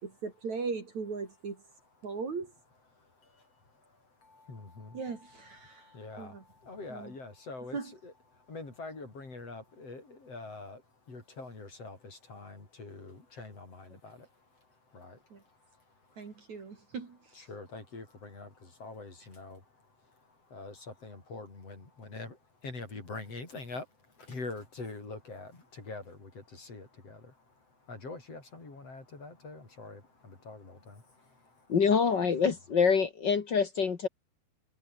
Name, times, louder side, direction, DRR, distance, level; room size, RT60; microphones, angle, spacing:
voice 1, 0.0-1.6 2.0-2.5 4.9-5.9 6.2-6.4 6.9-7.1 7.7-7.9 15.3-15.4 16.2-17.2, right 5 dB, 40° right, 4.0 m, -38 dB
voice 2, 4.5-4.9 5.9-6.3 6.7-8.1 8.5-10.8 11.1-12.0 12.3-13.8 14.9-15.1 17.4-18.5 18.8-19.6 20.5-20.7 21.0-22.3 22.6-23.8 24.3-25.5 25.9-26.3 26.6-27.1 27.9-30.0 30.5-30.9, left 3 dB, 30° left, 6.8 m, -43 dB
voice 3, 31.7-34.1, left 6 dB, 60° left, 1.1 m, -26 dB
omnidirectional pair, 5.3 m